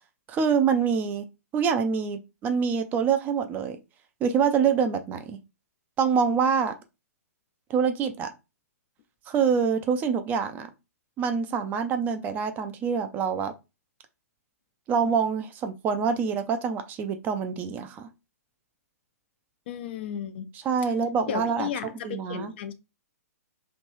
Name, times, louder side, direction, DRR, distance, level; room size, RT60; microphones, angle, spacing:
voice 1, 0.3-1.3 1.5-3.8 4.2-5.4 6.0-6.7 7.7-8.3 9.3-10.7 11.2-13.5 14.9-18.1 20.6-21.7 22.0-22.5, right 6 dB, 20° right, 0.4 m, -25 dB
voice 2, 19.7-20.5 21.3-22.7, left 9 dB, 40° left, 0.4 m, -34 dB
3.1 x 2.4 x 3.1 m
figure-of-eight pair, 115°, 9 cm